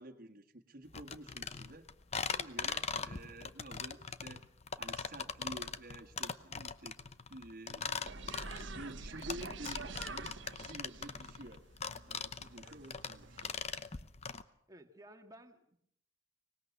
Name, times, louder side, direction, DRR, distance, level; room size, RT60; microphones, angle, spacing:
voice 1, 0.0-1.9 2.3-4.4 4.8-7.0 7.3-10.3 10.6-11.6 12.1-13.6, right 1 dB, 50° right, 2 dB, 1.8 m, -50 dB
sound 1, 0.9-14.4, left 6 dB, 35° left, 0.8 m, -40 dB
sound 2, 8.0-13.5, right 3 dB, 65° right, 1.4 m, -47 dB
voice 2, 14.7-15.8, right 1 dB, 20° right, 5 dB, 1.9 m, -56 dB
24.5 x 19.5 x 6.8 m, 0.68 s
head